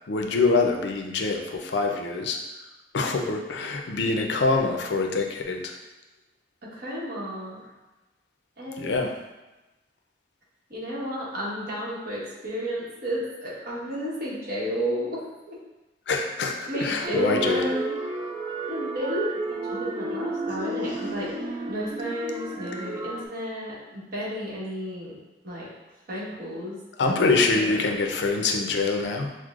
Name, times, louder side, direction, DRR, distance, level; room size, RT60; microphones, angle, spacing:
voice 1, 0.1-2.4 2.9-5.8 8.8-9.1 16.1-17.6 18.4-18.6 27.0-29.4, left 3 dB, 70° left, 3 dB, 0.5 m, -25 dB
voice 2, 6.6-7.6 8.6-9.0 10.7-15.2 15.5-15.6 16.7-18.0 18.7-25.2 25.4-25.7 26.1-27.9, equal, 55° right, -6 dB, 1.2 m, -32 dB
sound 1, 17.0-23.2, right 2 dB, 30° right, 0.3 m, -32 dB
6.1 x 2.1 x 2.4 m, 1.1 s
head